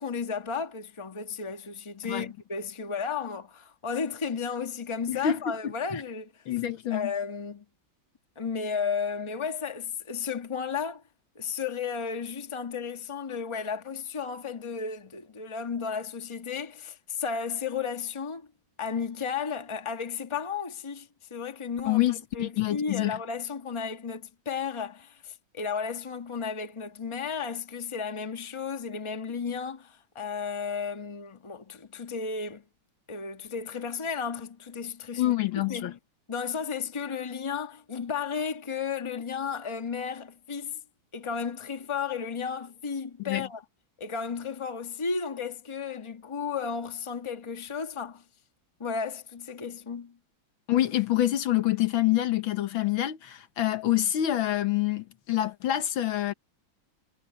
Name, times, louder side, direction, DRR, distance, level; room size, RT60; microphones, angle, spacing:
voice 1, 0.0-6.3 6.9-7.6 8.4-11.0 11.3-18.5 18.8-22.0 22.3-32.6 33.1-36.0 36.3-40.8 41.1-43.6 44.0-48.2 48.8-50.2, left 6 dB, 15° left, 1.2 m, -33 dB
voice 2, 5.1-6.0 6.5-7.1 21.9-23.2 35.2-35.9 43.2-43.5 50.7-56.3, left 13 dB, 75° left, 1.9 m, -27 dB
omnidirectional pair, 2.2 m